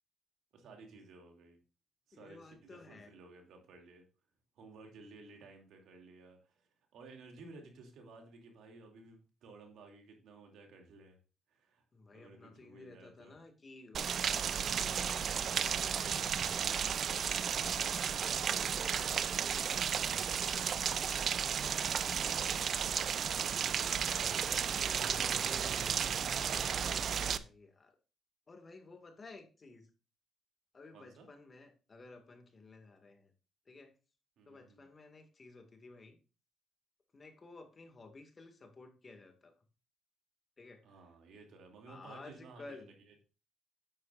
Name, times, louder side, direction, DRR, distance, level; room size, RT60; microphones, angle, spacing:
voice 1, 0.5-1.6 2.1-4.0 4.5-11.2 11.5-11.8 12.1-13.4 24.9-25.4 30.9-31.3 34.4-34.9 40.8-43.2, right 3 dB, 75° right, 2 dB, 2.7 m, -56 dB
voice 2, 2.1-3.1 11.9-16.3 17.2-17.3 17.6-20.7 21.4-22.4 23.8-25.8 26.7-27.9 28.5-29.9 30.7-33.3 33.7-33.9 34.5-36.2 37.1-39.5 40.6-41.0 41.9-42.9, left 3 dB, 35° left, 5 dB, 1.9 m, -54 dB
Rain, 13.9-27.4, right 7 dB, 60° right, 0.5 m, -33 dB
9.3 x 8.9 x 2.5 m, 0.33 s
cardioid pair, 90°, 0 cm